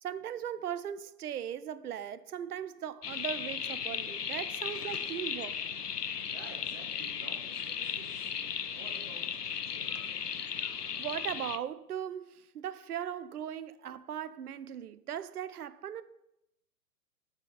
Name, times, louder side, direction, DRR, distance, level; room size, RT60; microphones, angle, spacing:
voice 1, 0.0-5.6 11.0-16.0, right 9 dB, 75° right, 0.5 m, -38 dB
sound 1, 3.0-11.6, left 7 dB, 85° left, 0.6 m, -36 dB
voice 2, 6.2-8.3 8.7-10.2, right 3 dB, 25° right, 1.4 m, -52 dB
7.3 x 5.0 x 4.0 m
figure-of-eight pair, 120°, 46 cm